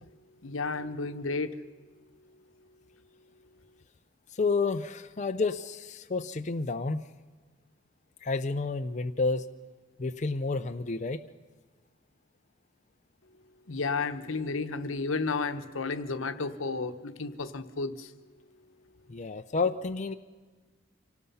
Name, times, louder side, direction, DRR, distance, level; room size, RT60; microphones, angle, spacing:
voice 1, 0.4-1.5 13.7-18.1, left 4 dB, 80° left, 10 dB, 1.1 m, -32 dB
voice 2, 4.4-7.0 8.2-9.4 10.0-11.2 19.1-20.1, left 3 dB, 35° left, 7 dB, 0.6 m, -30 dB
26.0 x 18.5 x 5.6 m, 1.4 s
head